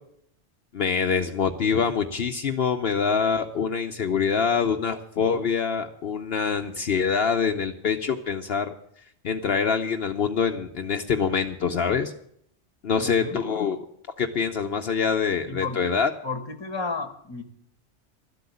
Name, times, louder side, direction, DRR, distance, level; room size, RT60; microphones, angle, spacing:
voice 1, 0.7-8.7 9.2-12.1 12.8-13.8 14.2-16.1, left 6 dB, 60° left, 5 dB, 1.0 m, -25 dB
voice 2, 13.0-13.4 15.5-15.9 16.2-17.4, left 4 dB, 25° left, 9 dB, 1.2 m, -33 dB
12.5 x 7.9 x 8.5 m, 0.66 s
omnidirectional pair, 1.2 m